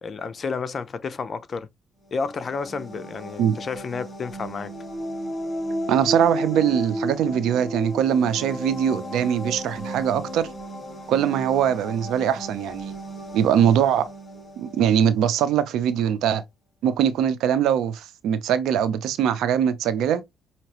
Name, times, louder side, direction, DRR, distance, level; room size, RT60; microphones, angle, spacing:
voice 1, 0.0-1.7 2.1-4.7, left 5 dB, 45° left, 0.6 m, -31 dB
sound 1, 2.0-15.6, equal, 25° left, 2.8 m, -34 dB
voice 2, 5.9-10.5 11.1-12.9 13.3-14.1 14.6-16.4 16.8-20.2, right 9 dB, 85° right, 0.7 m, -22 dB
5.8 x 2.9 x 3.0 m
cardioid pair, 90°, 0 cm